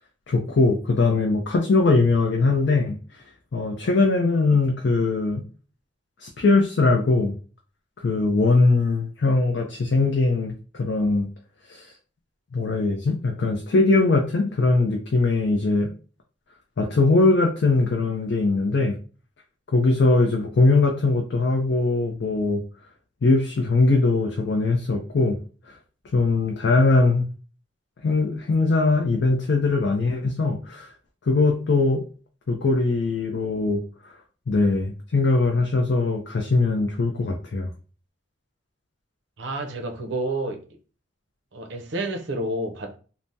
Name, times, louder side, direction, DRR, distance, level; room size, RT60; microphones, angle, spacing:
voice 1, 0.3-3.0 3.5-5.4 6.2-7.3 8.0-11.3 11.7-11.9 12.5-15.9 16.8-18.9 19.7-22.6 23.2-25.4 26.1-27.3 28.0-30.9 31.3-32.0 32.5-33.8 34.5-37.7, left 3 dB, 60° left, 0.4 m, -21 dB
voice 2, 39.4-40.6 41.5-43.0, right 1 dB, 65° right, 0.6 m, -29 dB
3.3 x 2.0 x 2.6 m
head